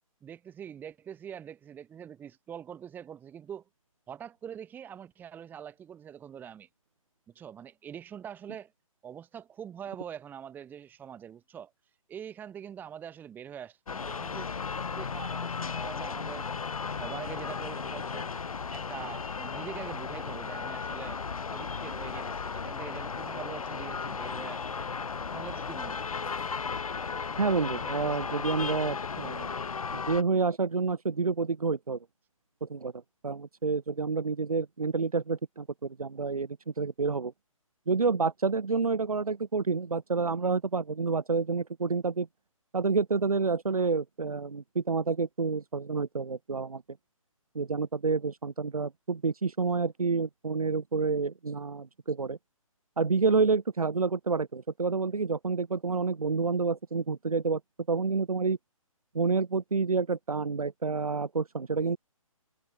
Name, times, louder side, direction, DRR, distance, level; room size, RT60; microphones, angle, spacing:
voice 1, 0.2-3.6 4.1-6.7 7.4-8.7 9.0-14.5 14.9-16.5 16.9-18.3 18.7-21.2 21.5-24.9 25.3-26.1, right 8 dB, 10° right, 1.8 m, -44 dB
sound 1, 13.9-30.2, left 5 dB, 75° left, 1.9 m, -35 dB
voice 2, 27.4-29.5 29.9-32.0 32.6-32.9 33.2-36.5 36.8-37.3 37.9-42.3 42.7-46.8 47.5-52.4 53.0-57.6 57.9-58.6 59.1-62.0, right 4 dB, 85° right, 2.2 m, -28 dB
hypercardioid pair, 150°, 18 cm